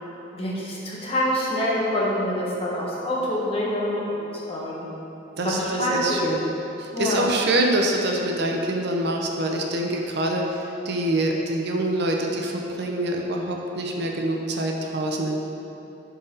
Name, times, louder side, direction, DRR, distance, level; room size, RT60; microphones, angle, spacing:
voice 1, 0.3-4.8 5.4-6.3 6.9-7.3, left 1 dB, 30° left, -5 dB, 1.4 m, -26 dB
voice 2, 5.4-6.5 6.8-15.4, right 1 dB, 60° right, 1 dB, 0.7 m, -25 dB
11.0 x 4.1 x 3.9 m, 3.0 s
head